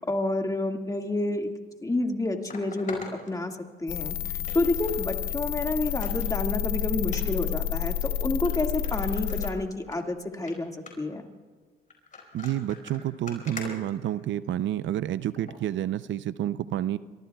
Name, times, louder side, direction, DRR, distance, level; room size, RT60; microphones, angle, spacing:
voice 1, 0.1-1.5 1.8-4.2 4.5-11.2, left 2 dB, 15° left, 3 dB, 1.9 m, -29 dB
sound 1, 1.4-1.5 2.5-3.9 4.4-5.0 5.4-5.5 5.9-6.3 7.0-7.2 8.0-8.1 8.5-8.6 8.8-10.0 10.3-10.5 10.9-11.2 11.9-14.6 15.4-15.6 16.1-16.2, left 4 dB, 40° left, 5.0 m, -43 dB
sound 2, 3.9-9.5, left 10 dB, 85° left, 0.9 m, -30 dB
voice 2, 12.3-17.0, right 12 dB, 70° right, 14 dB, 0.5 m, -29 dB
26.5 x 24.0 x 2.3 m, 1.5 s
cardioid pair, 90°, 20 cm